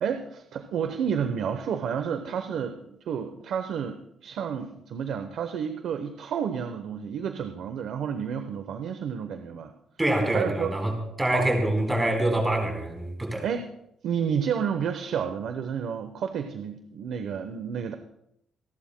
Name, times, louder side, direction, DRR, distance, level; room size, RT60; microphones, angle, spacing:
voice 1, 0.0-9.7 10.3-10.7 11.3-11.5 13.4-13.7 14.0-17.9, right 7 dB, 70° right, 8 dB, 0.9 m, -30 dB
voice 2, 10.0-13.4, right 1 dB, 15° right, 2 dB, 4.0 m, -25 dB
27.5 x 11.5 x 2.2 m, 0.78 s
cardioid pair, 90°, 0 cm